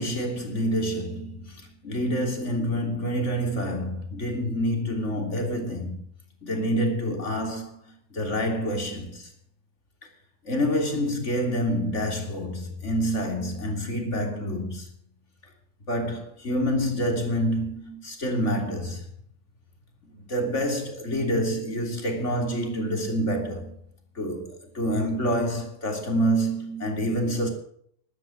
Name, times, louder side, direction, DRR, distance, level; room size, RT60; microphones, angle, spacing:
voice 1, 0.0-6.0 6.4-7.8 8.1-9.3 10.4-14.9 15.9-19.0 20.3-23.7 24.2-27.5, equal, 55° left, 3.6 m, -27 dB
13.5 x 12.0 x 6.4 m
omnidirectional pair, 1.5 m